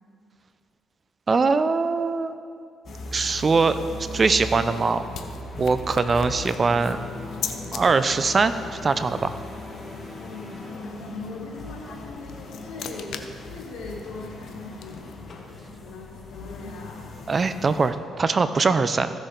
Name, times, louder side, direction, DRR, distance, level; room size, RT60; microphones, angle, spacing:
voice 1, 1.3-2.4 3.1-3.8 4.1-5.0 5.6-7.0 7.7-9.3 17.3-19.2, right 4 dB, 35° right, 12 dB, 0.5 m, -22 dB
sound 1, 2.9-17.9, left 2 dB, 50° left, 1.3 m, -39 dB
sound 2, 4.3-7.8 12.0-15.3, left 8 dB, 70° left, 0.7 m, -40 dB
sound 3, 4.3-10.7, left 1 dB, 10° right, 1.8 m, -42 dB
voice 2, 10.2-13.2 13.4-17.1, left 3 dB, 90° left, -2 dB, 2.0 m, -40 dB
15.0 x 6.4 x 3.9 m, 2.3 s
cardioid pair, 90°, 0 cm